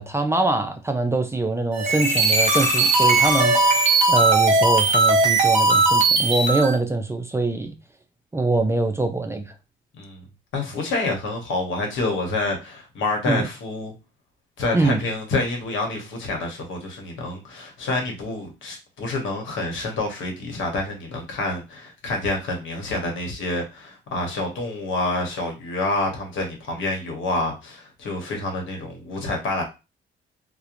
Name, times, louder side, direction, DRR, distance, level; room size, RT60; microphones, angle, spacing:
voice 1, 0.0-3.8 4.1-7.8 8.3-9.5 13.3-13.5 14.7-15.0, right 2 dB, 15° right, 0.4 m, -23 dB
sound 1, 1.7-6.8, right 3 dB, 35° right, 0.9 m, -18 dB
voice 2, 10.5-13.9 14.6-29.6, left 2 dB, 80° left, 1.0 m, -27 dB
2.8 x 2.1 x 2.5 m
cardioid pair, 90°, 20 cm